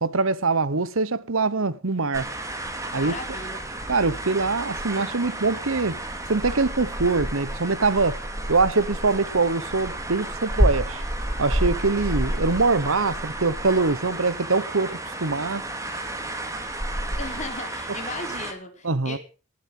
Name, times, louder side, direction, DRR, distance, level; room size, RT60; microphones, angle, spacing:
voice 1, 0.0-2.3 2.9-3.1 3.9-6.0 6.3-8.2 8.5-11.0 11.4-15.6 18.8-19.2, right 3 dB, 70° right, 1.1 m, -23 dB
sound 1, 2.1-18.5, right 1 dB, 15° right, 2.4 m, -30 dB
voice 2, 2.9-3.6 17.2-19.2, left 2 dB, 35° left, 3.9 m, -36 dB
19.0 x 7.5 x 7.7 m
head